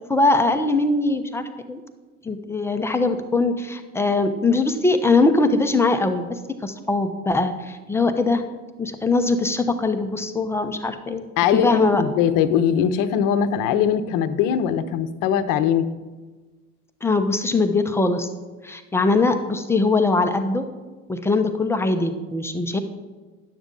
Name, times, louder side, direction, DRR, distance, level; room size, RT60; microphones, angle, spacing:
voice 1, 0.1-1.8 2.3-8.4 8.8-11.3 11.5-12.0 17.0-18.3 18.6-20.6 21.1-22.8, left 3 dB, 5° left, 7 dB, 0.3 m, -21 dB
voice 2, 11.4-15.9, left 8 dB, 45° left, 11 dB, 0.7 m, -21 dB
10.5 x 7.0 x 3.7 m, 1.3 s
hypercardioid pair, 90°, 45 cm